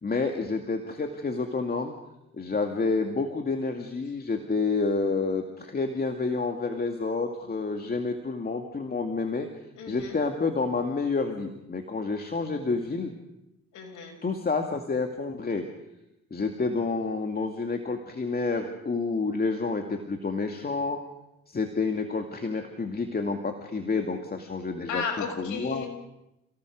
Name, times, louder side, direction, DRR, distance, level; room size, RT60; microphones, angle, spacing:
voice 1, 0.0-1.9 2.3-9.5 9.9-13.1 14.2-15.6 16.3-21.0 21.5-25.8, left 4 dB, 30° left, 4 dB, 2.4 m, -29 dB
voice 2, 9.8-10.2 13.7-14.2 24.9-25.9, left 5 dB, 75° left, 1 dB, 6.5 m, -34 dB
29.0 x 17.5 x 6.6 m, 0.90 s
cardioid pair, 90°, 30 cm